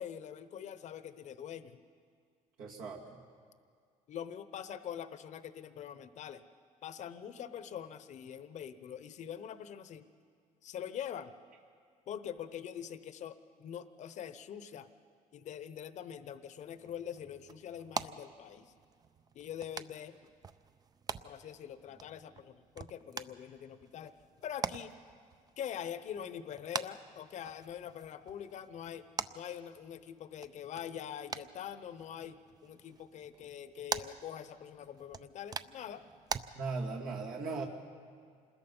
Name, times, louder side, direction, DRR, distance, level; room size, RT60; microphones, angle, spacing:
voice 1, 0.0-1.8 4.1-6.4 6.8-10.1 10.6-11.3 12.1-14.9 15.3-18.7 19.3-20.2 21.2-24.1 24.4-25.0 25.6-29.0 29.3-36.0, left 9 dB, 55° left, 13 dB, 0.9 m, -44 dB
voice 2, 2.6-3.0 36.5-37.7, right 4 dB, 75° right, -2 dB, 2.3 m, -37 dB
sound 1, 16.6-36.4, right 5 dB, 25° right, 0.5 m, -45 dB
27.0 x 20.5 x 5.5 m, 2.1 s
cardioid pair, 130°, 15 cm